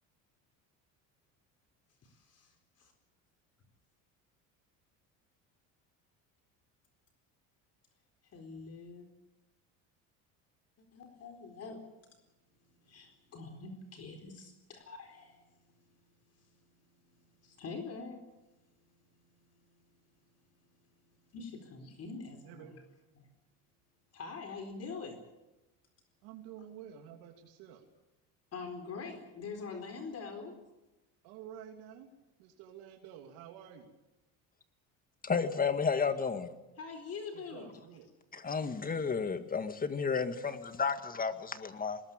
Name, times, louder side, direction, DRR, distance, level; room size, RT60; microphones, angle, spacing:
voice 1, 2.0-2.9 8.2-9.1 10.8-11.8 12.7-16.0 16.3-18.2 19.2-19.9 21.3-22.8 23.1-23.3 24.1-25.2 28.5-30.6 36.8-37.7, left 4 dB, 40° left, 4.2 m, -45 dB
voice 2, 22.4-22.8 26.2-27.8 31.2-32.1 32.4-33.9 37.3-38.1, right 9 dB, 75° right, 3.0 m, -50 dB
voice 3, 35.2-36.5 38.3-42.0, left 5 dB, 25° left, 1.9 m, -32 dB
20.5 x 19.5 x 8.9 m
cardioid pair, 115°, 36 cm